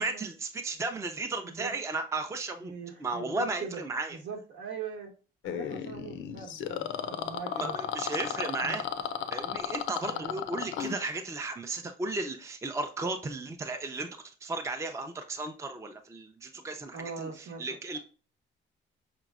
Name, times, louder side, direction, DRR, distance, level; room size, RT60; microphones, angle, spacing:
voice 1, 0.0-2.7 3.0-4.2 7.5-8.9 9.3-14.1 14.4-18.0, right 3 dB, 15° right, 6 dB, 0.5 m, -34 dB
voice 2, 2.6-3.8 4.1-5.1 5.4-7.8 8.6-8.8 10.0-10.4 16.9-18.0, right 5 dB, 70° right, 1 dB, 1.1 m, -41 dB
sound 1, 5.4-11.0, left 9 dB, 80° left, 0.4 m, -34 dB
5.2 x 3.0 x 2.4 m, 0.36 s
cardioid pair, 90°, 20 cm